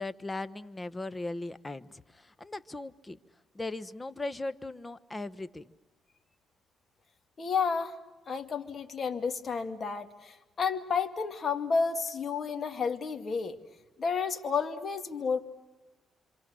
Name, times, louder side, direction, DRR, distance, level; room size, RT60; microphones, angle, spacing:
voice 1, 0.0-3.2 3.5-5.6, left 2 dB, 20° left, 13 dB, 1.1 m, -38 dB
voice 2, 7.4-8.0 8.3-13.6 14.0-15.4, left 5 dB, 45° left, 6 dB, 2.2 m, -31 dB
27.0 x 26.5 x 6.3 m, 1.1 s
cardioid pair, 90°, 0 cm